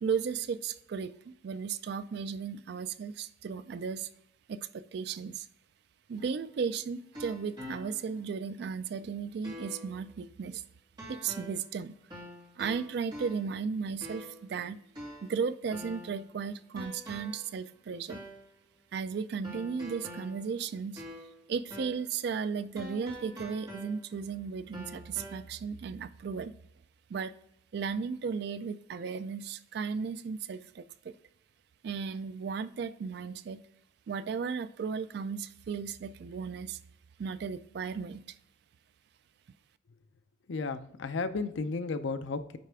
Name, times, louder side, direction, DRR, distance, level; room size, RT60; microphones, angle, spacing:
voice 1, 0.0-4.1 4.5-5.5 6.1-10.6 11.1-12.0 12.6-14.8 15.2-18.2 18.9-21.0 21.5-26.5 27.1-27.3 27.7-31.1 31.8-33.6 34.1-36.8 37.2-38.4, right 6 dB, 55° right, 0.3 m, -35 dB
sound 1, 6.2-8.2 8.7-8.8 9.4-10.0 11.0-11.7 12.1-13.6 14.0-14.5 14.9-16.2 16.8-17.5 18.1-18.5 19.4-21.4 21.7-22.1 22.8-24.3 24.7-25.4, equal, 25° right, 2.0 m, -45 dB
voice 2, 40.5-42.6, left 4 dB, 70° left, 0.5 m, -33 dB
9.4 x 3.3 x 3.4 m
head